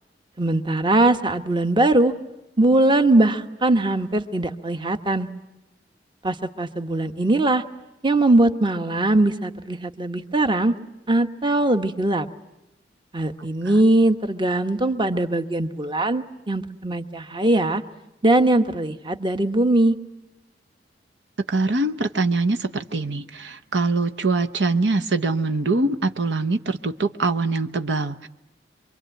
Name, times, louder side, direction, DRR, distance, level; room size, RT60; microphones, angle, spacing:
voice 1, 0.4-2.1 2.6-5.3 6.2-7.6 8.0-10.7 11.1-12.3 13.1-17.8 18.2-20.0, right 2 dB, 25° right, 8 dB, 1.1 m, -20 dB
voice 2, 21.5-28.3, right 3 dB, 75° right, 10 dB, 0.9 m, -23 dB
26.0 x 23.5 x 9.1 m, 0.97 s
head